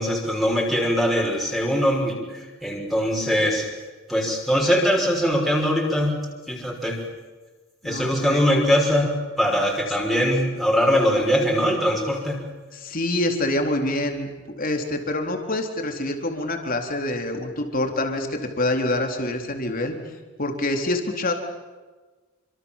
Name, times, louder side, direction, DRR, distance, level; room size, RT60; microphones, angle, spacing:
voice 1, 0.0-3.7 4.1-6.2 6.5-7.0 7.8-12.4, equal, ahead, -1 dB, 6.1 m, -22 dB
voice 2, 7.8-8.4 12.7-14.3 14.6-19.9 20.4-21.3, left 1 dB, 40° left, 4 dB, 4.1 m, -26 dB
29.0 x 26.5 x 7.5 m, 1.3 s
head